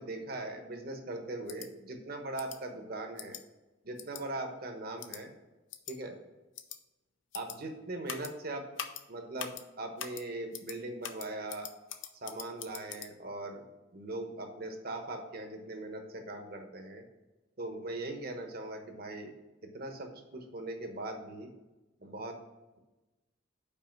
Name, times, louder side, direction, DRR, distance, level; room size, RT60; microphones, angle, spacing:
voice 1, 0.0-3.4 3.8-5.3 5.9-6.2 7.3-8.6 9.1-11.7 12.2-13.6 13.9-17.0 17.6-19.3 19.6-21.5 22.0-22.4, right 2 dB, 50° right, 4 dB, 1.0 m, -40 dB
sound 1, 1.5-1.7 2.4-2.6 3.2-3.4 4.0-4.2 5.0-5.2 5.7-5.9 6.6-6.8 7.3-7.6 8.1-8.3 8.8-9.0 9.4-9.6 10.0-10.2 10.5-10.8 11.0-13.1, left 10 dB, 70° left, 0.6 m, -42 dB
5.5 x 4.9 x 6.0 m, 1.1 s
head